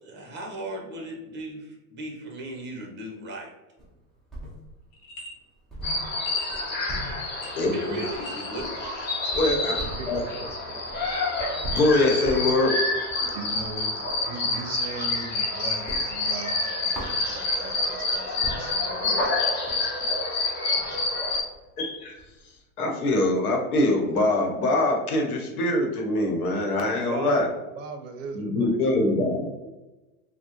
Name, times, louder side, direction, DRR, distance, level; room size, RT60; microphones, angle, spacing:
voice 1, 0.0-3.5 7.6-8.8, right 1 dB, 25° right, -1 dB, 0.8 m, -36 dB
sound 1, 3.8-4.9 5.3-5.4 5.7-14.3 14.7-15.4 15.7-17.7 18.1-18.2 18.4-22.6, right 1 dB, ahead, 0.3 m, -40 dB
sound 2, 4.9-5.4 6.3-6.7 7.2-7.9 8.1-8.6, equal, 60° left, 0.8 m, -42 dB
sound 3, 5.8-21.4, left 2 dB, 25° left, 0.7 m, -28 dB
voice 2, 7.6-8.0 9.3-9.8 10.1-10.2 11.7-12.8 21.8-22.2 22.8-27.5 28.3-29.6, left 2 dB, 85° left, 1 dB, 1.0 m, -23 dB
voice 3, 10.0-11.1 13.3-19.0 27.1-28.8, right 4 dB, 60° right, 5 dB, 0.6 m, -39 dB
3.5 x 2.1 x 2.9 m, 1.1 s
hypercardioid pair, 120°, 44 cm